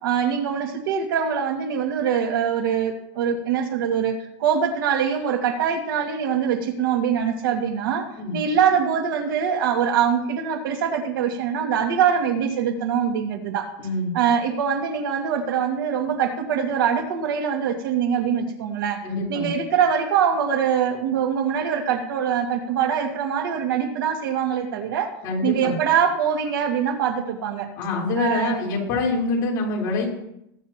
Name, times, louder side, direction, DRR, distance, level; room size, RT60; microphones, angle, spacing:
voice 1, 0.0-8.1 8.3-13.7 14.1-19.0 19.3-25.1 25.4-27.7 28.2-28.6, right 7 dB, 80° right, 4 dB, 2.1 m, -23 dB
voice 2, 13.8-14.1 19.0-19.5 25.2-25.7 27.8-30.1, left 3 dB, 35° left, -4 dB, 4.0 m, -25 dB
20.5 x 9.4 x 3.0 m, 0.79 s
supercardioid pair, 180°, 11 cm